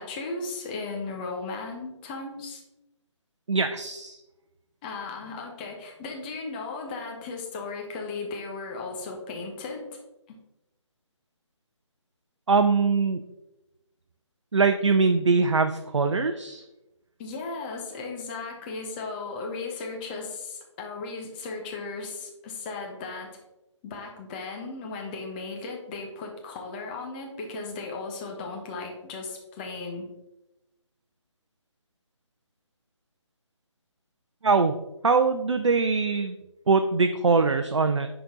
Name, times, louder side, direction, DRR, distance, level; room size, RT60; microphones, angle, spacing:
voice 1, 0.0-2.6 4.8-10.0 10.3-10.4 17.2-23.4 23.8-30.1, left 3 dB, 20° left, 1 dB, 1.1 m, -36 dB
voice 2, 3.5-4.2 12.5-13.2 14.5-16.6 34.4-34.7 35.0-36.4 36.7-38.1, right 4 dB, 70° right, 7 dB, 0.6 m, -22 dB
10.0 x 4.0 x 3.8 m, 0.95 s
figure-of-eight pair, 150°, 16 cm